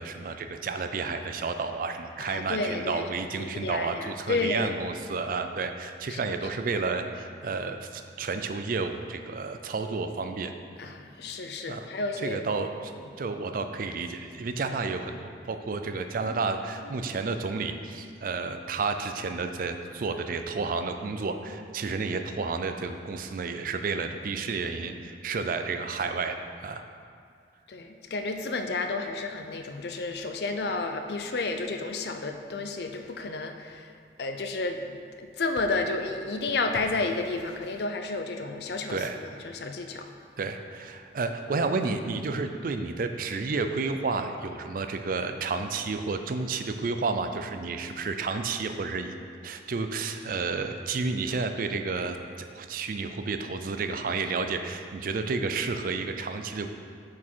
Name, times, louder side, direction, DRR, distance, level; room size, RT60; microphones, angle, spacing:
voice 1, 0.0-10.5 11.7-11.9 12.2-12.9 13.2-26.4 26.6-26.8 38.9-39.2 40.4-49.2 49.4-52.2 52.5-56.7, right 4 dB, 50° right, 7 dB, 0.4 m, -31 dB
voice 2, 2.2-3.1 3.4-4.7 6.1-6.4 10.8-12.4 16.2-16.4 16.9-17.1 27.7-33.9 34.2-39.0 39.4-40.1, left 3 dB, 65° left, 6 dB, 0.5 m, -31 dB
6.1 x 6.1 x 4.5 m, 2.2 s
head